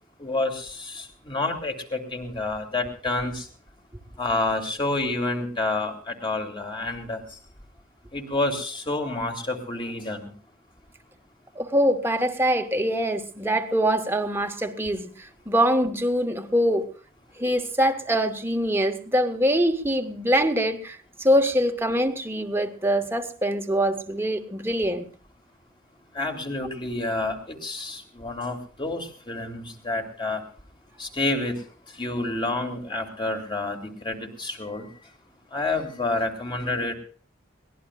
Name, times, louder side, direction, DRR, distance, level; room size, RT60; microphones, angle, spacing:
voice 1, 0.2-3.5 4.2-7.4 8.1-10.3 26.1-30.4 31.0-31.6 31.9-34.9 35.5-36.9, left 2 dB, 25° left, 3 dB, 2.9 m, -29 dB
voice 2, 11.5-16.9 17.4-25.0, equal, 10° right, 5 dB, 1.4 m, -24 dB
22.5 x 18.5 x 2.5 m, 0.43 s
head